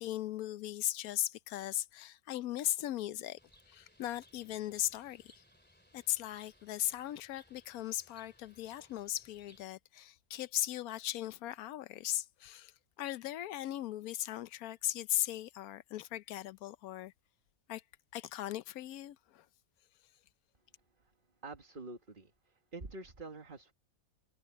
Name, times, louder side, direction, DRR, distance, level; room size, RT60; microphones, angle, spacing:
voice 1, 0.0-3.4 3.7-5.4 5.9-12.7 13.0-17.1 17.7-17.8 18.1-19.4, left 13 dB, 90° left, 1.1 m, -38 dB
Bird, 3.4-9.6, equal, 5° left, 2.4 m, -65 dB
voice 2, 21.4-23.7, right 3 dB, 35° right, 1.8 m, -47 dB
omnidirectional pair, 1.5 m